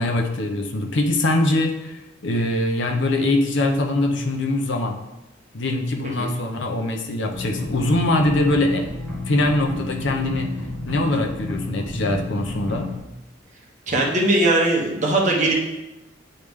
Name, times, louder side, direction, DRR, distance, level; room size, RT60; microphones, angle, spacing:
voice 1, 0.0-5.0 5.5-8.9 9.3-10.5 10.9-12.9, left 1 dB, 70° left, 3 dB, 0.8 m, -22 dB
sound 1, 7.3-13.0, left 2 dB, 10° left, 1.2 m, -31 dB
voice 2, 13.9-15.5, right 2 dB, 40° right, -2 dB, 1.1 m, -19 dB
9.1 x 3.3 x 3.5 m, 0.99 s
head